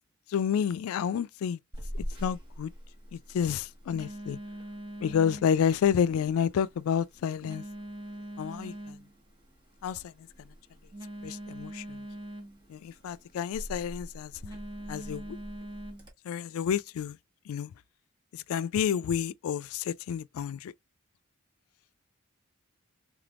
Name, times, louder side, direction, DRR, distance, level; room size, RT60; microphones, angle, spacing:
voice 1, 0.3-1.6 2.2-2.7 3.1-4.4 5.0-7.6 8.4-9.0 9.8-10.3 11.2-12.0 12.7-14.3 14.9-15.4 16.2-17.2 17.5-17.7 18.3-20.7, left 8 dB, 75° left, 0.3 m, -30 dB
Telephone, 1.7-16.1, equal, 25° right, 1.2 m, -43 dB
3.4 x 3.3 x 2.3 m
head